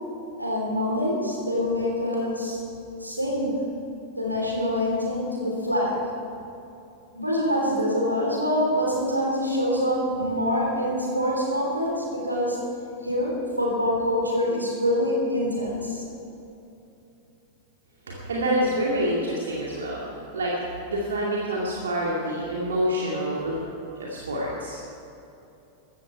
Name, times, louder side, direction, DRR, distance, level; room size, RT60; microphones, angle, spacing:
voice 1, 0.4-2.6 3.0-3.5 4.1-6.0 7.1-12.6 13.0-13.3 13.6-16.0, equal, 85° right, -2 dB, 3.5 m, -25 dB
voice 2, 18.1-20.0 20.3-20.5 20.9-23.6 24.0-24.8, right 1 dB, 70° right, -4 dB, 2.2 m, -27 dB
15.0 x 14.5 x 4.6 m, 2.8 s
figure-of-eight pair, 90°, 0 cm